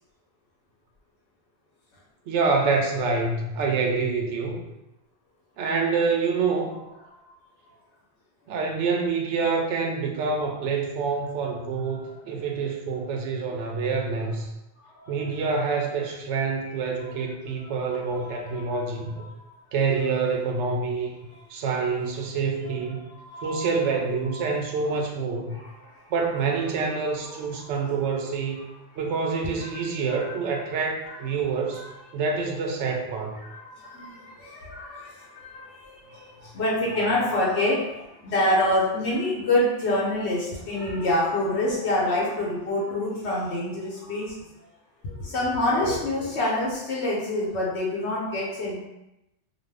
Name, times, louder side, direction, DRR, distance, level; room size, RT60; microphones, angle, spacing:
voice 1, 2.3-4.6 5.6-6.7 8.5-14.5 15.1-19.2 19.7-21.1 21.5-23.0 23.4-25.6 26.1-28.6 29.0-31.9 32.1-33.4, right 4 dB, 85° right, 1 dB, 0.9 m, -26 dB
voice 2, 11.7-12.2 14.8-15.5 15.8-15.9 16.6-16.7 17.0-17.1 17.5-19.5 21.3-21.4 22.6-22.7 23.1-23.7 24.3-24.8 25.5-26.1 26.6-27.7 29.6-29.9 30.3-30.4 31.0-31.2 31.7-31.9 33.4-44.4 45.0-48.8, left 1 dB, 75° left, -5 dB, 1.0 m, -28 dB
2.5 x 2.3 x 3.3 m, 0.92 s
omnidirectional pair, 1.2 m